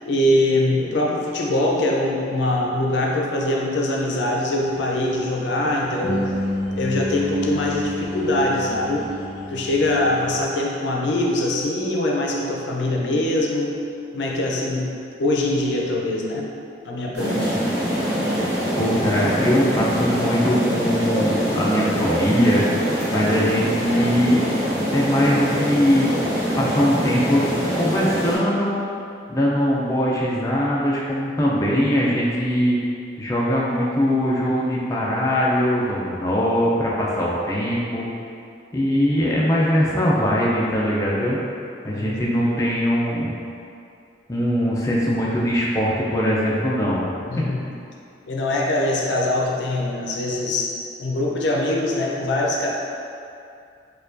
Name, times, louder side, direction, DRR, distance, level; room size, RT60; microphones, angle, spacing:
voice 1, 0.0-6.3 6.8-9.1 9.5-13.8 14.1-14.9 15.2-16.5 16.8-17.5 38.8-39.1 41.9-42.3 47.3-47.6 48.3-52.7, left 1 dB, 85° left, -1 dB, 0.5 m, -23 dB
sound 1, 4.6-10.4, left 1 dB, 10° right, 0.9 m, -30 dB
sound 2, 17.1-28.4, equal, 75° right, 1.2 m, -24 dB
voice 2, 18.8-24.4 24.9-26.1 26.6-28.8 29.3-32.8 33.2-38.1 38.7-41.4 41.8-43.3 44.3-47.4, equal, 20° left, -5 dB, 0.3 m, -21 dB
4.4 x 2.3 x 2.5 m, 2.5 s
head